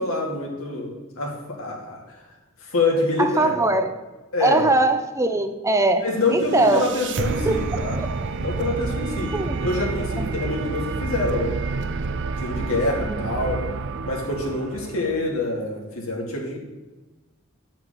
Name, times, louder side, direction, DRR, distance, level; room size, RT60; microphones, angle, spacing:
voice 1, 0.0-2.2 2.6-3.8 4.3-4.6 6.0-8.0 8.4-11.6 12.4-13.7 14.0-16.6, left 2 dB, 85° left, 0 dB, 2.4 m, -26 dB
voice 2, 3.2-3.9 4.4-6.0 6.3-6.8 7.5-7.6 8.0-8.1 9.3-9.6 10.2-10.3 13.1-13.2, right 2 dB, 15° right, 8 dB, 0.6 m, -21 dB
sound 1, 6.1-15.3, right 4 dB, 60° right, 0.5 m, -29 dB
9.3 x 5.9 x 6.4 m, 1.2 s
head